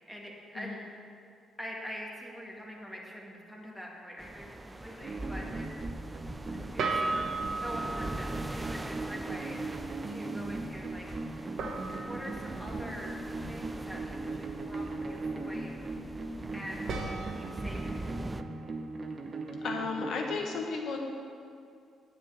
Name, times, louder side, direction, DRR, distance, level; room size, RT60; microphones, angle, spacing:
voice 1, 0.1-0.8 1.6-5.7 6.5-7.3 7.6-11.1 12.0-13.2 13.5-15.8 16.5-17.0 17.3-18.0, equal, 5° left, -2 dB, 1.9 m, -44 dB
sound 1, 2.3-2.5 6.8-9.2 11.6-14.1 16.9-19.9, right 3 dB, 70° right, 1.4 m, -38 dB
sound 2, 4.2-18.4, right 1 dB, 15° right, 0.4 m, -42 dB
sound 3, 5.0-20.4, right 3 dB, 35° right, 1.0 m, -39 dB
voice 2, 19.6-21.0, left 4 dB, 70° left, 2 dB, 1.4 m, -34 dB
9.2 x 5.4 x 8.0 m, 2.4 s
cardioid pair, 90°, 0 cm